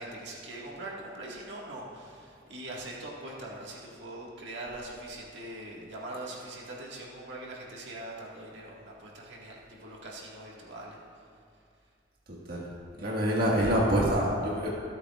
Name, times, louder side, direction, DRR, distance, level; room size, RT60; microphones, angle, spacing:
voice 1, 0.0-11.0, right 1 dB, 75° right, -4 dB, 1.9 m, -42 dB
voice 2, 12.3-12.6 13.0-14.7, equal, 55° right, -4 dB, 1.8 m, -26 dB
25.0 x 8.3 x 2.5 m, 2.4 s
head